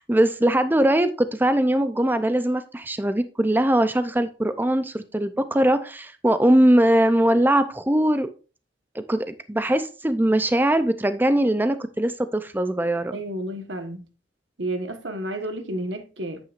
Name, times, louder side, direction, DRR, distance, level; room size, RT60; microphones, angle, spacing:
voice 1, 0.0-8.3 8.9-13.2, right 1 dB, 10° right, 0.5 m, -21 dB
voice 2, 13.1-14.0 14.6-16.4, right 1 dB, 80° right, 1.4 m, -31 dB
10.0 x 8.7 x 2.5 m
head